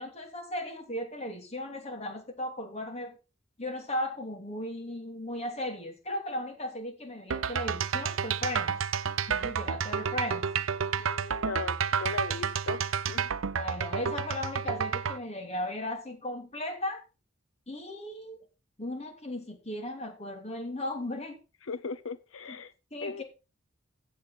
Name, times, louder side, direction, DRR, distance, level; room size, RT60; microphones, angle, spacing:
voice 1, 0.0-3.2 3.6-8.8 9.3-10.5 13.5-17.0 17.7-18.4 18.8-21.4 22.5-22.6 22.9-23.2, left 1 dB, 35° left, 3.0 m, -36 dB
sound 1, 7.3-15.2, right 6 dB, 90° right, 0.7 m, -30 dB
voice 2, 11.0-13.3 21.7-22.7 23.0-23.2, left 4 dB, 85° left, 0.8 m, -38 dB
15.5 x 7.8 x 4.1 m
head